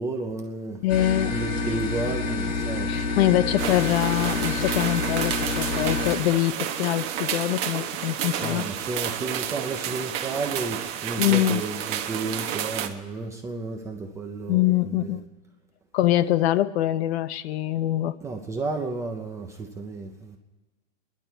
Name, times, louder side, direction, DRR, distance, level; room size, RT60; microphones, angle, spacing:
voice 1, 0.0-0.8 1.3-2.9 8.4-15.2 18.2-20.4, right 3 dB, 10° right, 0.4 m, -32 dB
voice 2, 0.8-1.3 2.9-8.7 11.2-11.6 14.5-15.2 15.9-18.2, left 13 dB, 55° left, 0.7 m, -24 dB
sound 1, 0.9-6.2, left 3 dB, 75° left, 2.7 m, -28 dB
sound 2, 3.6-12.9, right 10 dB, 35° right, 1.1 m, -30 dB
28.5 x 11.0 x 4.5 m
supercardioid pair, 160°, 37 cm